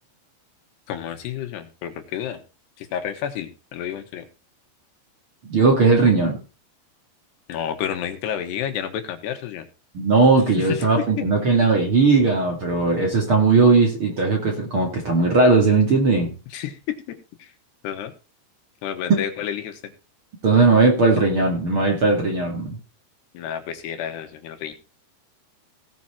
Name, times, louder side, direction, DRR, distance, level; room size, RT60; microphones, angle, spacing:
voice 1, 0.9-2.4 2.8-4.3 7.5-9.7 10.6-11.3 16.5-17.5 17.8-18.1 18.8-19.9 23.3-24.7, left 9 dB, 75° left, 6 dB, 3.5 m, -30 dB
voice 2, 5.4-6.4 9.9-16.3 19.1-19.2 20.4-22.8, right 3 dB, 40° right, 1 dB, 2.3 m, -18 dB
17.5 x 6.2 x 4.3 m, 0.33 s
omnidirectional pair, 4.9 m